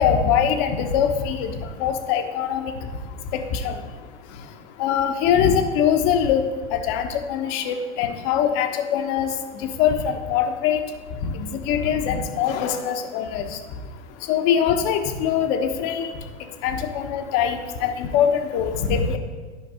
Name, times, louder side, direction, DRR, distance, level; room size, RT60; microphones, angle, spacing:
voice 1, 0.0-1.5 1.8-2.7 3.3-3.7 4.8-6.4 6.7-9.3 9.8-10.8 11.2-13.5 14.3-16.1 16.6-19.2, left 8 dB, 55° left, 7 dB, 1.1 m, -22 dB
11.5 x 5.2 x 5.0 m, 1.4 s
hypercardioid pair, 90°, 35 cm